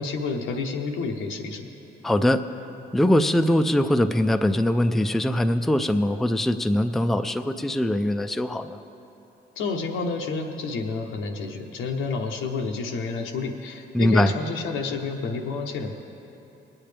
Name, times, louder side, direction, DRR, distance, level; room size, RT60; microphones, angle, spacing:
voice 1, 0.0-1.7 9.6-15.9, left 4 dB, 90° left, 3 dB, 0.9 m, -29 dB
voice 2, 2.0-2.4 2.9-8.8 13.9-14.3, left 1 dB, ahead, 8 dB, 0.4 m, -22 dB
19.0 x 8.7 x 3.4 m, 3.0 s
cardioid pair, 90°, 20 cm